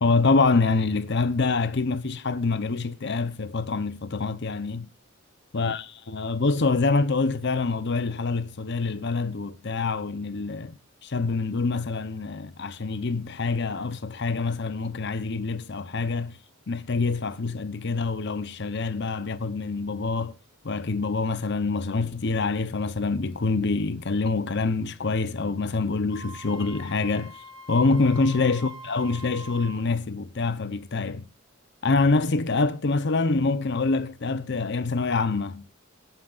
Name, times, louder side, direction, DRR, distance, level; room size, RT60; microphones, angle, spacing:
voice 1, 0.0-4.9 5.5-16.4 16.7-20.3 20.6-31.3 31.8-35.6, left 3 dB, 60° left, 0.8 m, -26 dB
Wind instrument woodwind instrument, 26.1-29.8, right 1 dB, 20° right, 3.0 m, -44 dB
25.0 x 9.3 x 2.5 m
head